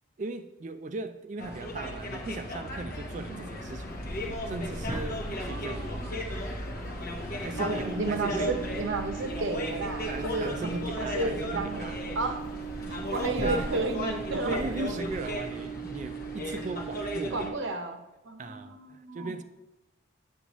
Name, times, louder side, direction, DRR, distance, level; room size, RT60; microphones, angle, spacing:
voice 1, 0.2-3.9 4.5-5.9 7.4-8.6 10.1-12.2 12.9-13.1 13.4-13.7 14.3-17.6 18.4-19.4, right 3 dB, 40° right, 0.4 m, -38 dB
sound 1, 1.4-17.5, left 1 dB, 45° left, 1.0 m, -36 dB
sound 2, 3.8-15.3, equal, 15° right, 0.8 m, -43 dB
voice 2, 5.3-6.2 7.6-10.8 11.1-11.9 12.1-12.4 12.9-14.6 17.3-18.0 18.2-19.3, right 2 dB, 75° right, 0.8 m, -33 dB
sound 3, 7.5-17.5, right 8 dB, 75° left, 0.8 m, -40 dB
8.3 x 7.1 x 3.0 m
head